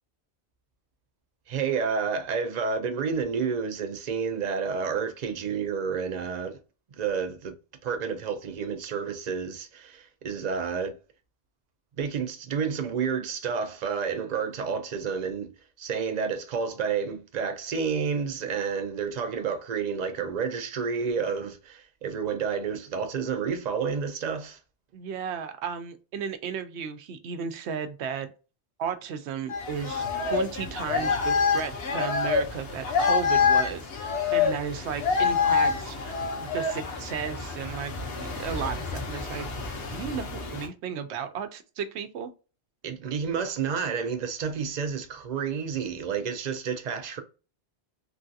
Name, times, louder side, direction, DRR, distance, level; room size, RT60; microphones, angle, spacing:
voice 1, 1.5-6.6 7.0-7.6 7.8-10.9 11.9-15.5 15.8-24.6 42.8-47.2, right 6 dB, 55° right, 0.5 m, -30 dB
voice 2, 24.9-28.3 28.8-30.0 30.3-39.5 39.9-42.3, right 7 dB, 80° right, 0.9 m, -34 dB
sound 1, 29.5-40.7, left 5 dB, 65° left, 1.0 m, -27 dB
3.2 x 2.4 x 2.6 m
omnidirectional pair, 1.1 m